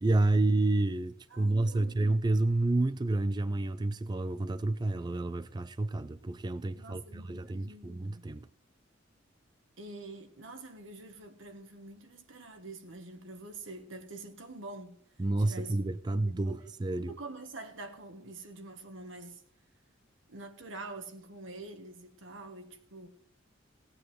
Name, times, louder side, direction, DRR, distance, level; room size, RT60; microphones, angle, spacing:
voice 1, 0.0-8.5 15.2-17.1, right 2 dB, 20° right, 0.4 m, -29 dB
voice 2, 1.3-2.2 6.8-8.3 9.8-15.0 15.4-15.8 16.1-16.7 17.0-19.4 20.3-23.1, right 2 dB, 85° right, 1.7 m, -46 dB
17.5 x 8.7 x 4.6 m
head